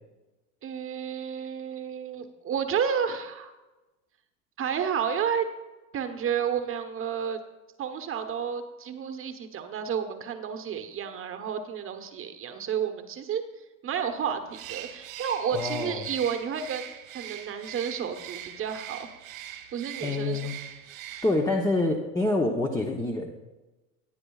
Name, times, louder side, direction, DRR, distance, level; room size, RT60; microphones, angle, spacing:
voice 1, 0.6-3.5 4.6-5.5 5.9-7.4 7.8-13.4 13.8-16.9 17.1-19.1 19.7-20.5, right 7 dB, 30° right, 7 dB, 1.2 m, -31 dB
Bird, 14.5-21.6, right 11 dB, 80° right, 1.9 m, -42 dB
voice 2, 15.5-16.1 20.0-20.5 21.2-23.3, left 2 dB, 10° left, 2 dB, 0.9 m, -26 dB
18.0 x 9.0 x 2.4 m, 1.1 s
hypercardioid pair, 105°, 41 cm